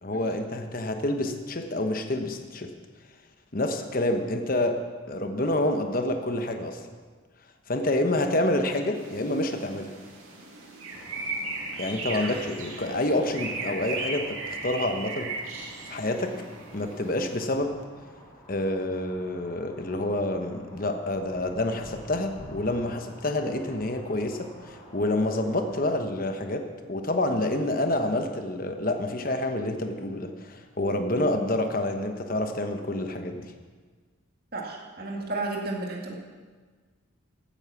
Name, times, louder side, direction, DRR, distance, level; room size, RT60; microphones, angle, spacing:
voice 1, 0.0-2.7 3.5-6.8 7.7-9.9 11.8-16.5 16.7-17.8 18.5-33.5, left 1 dB, 45° left, 6 dB, 1.1 m, -28 dB
sound 1, 8.9-17.4, right 3 dB, 85° right, 2.5 m, -37 dB
sound 2, 10.9-25.9, equal, 10° left, 4.2 m, -49 dB
voice 2, 34.5-36.1, right 2 dB, 45° right, -1 dB, 2.1 m, -32 dB
16.0 x 8.9 x 6.0 m, 1.5 s
head